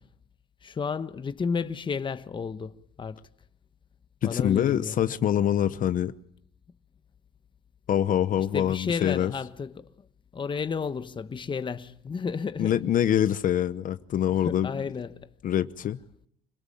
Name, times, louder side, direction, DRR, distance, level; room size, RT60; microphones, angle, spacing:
voice 1, 0.6-3.3 4.2-4.9 8.4-9.9 10.3-12.8 14.4-15.3, left 5 dB, 30° left, 1.1 m, -32 dB
voice 2, 4.2-6.1 7.9-9.3 12.6-14.7 15.4-16.0, left 10 dB, 55° left, 0.9 m, -25 dB
26.5 x 18.5 x 8.7 m
cardioid pair, 110°, 17 cm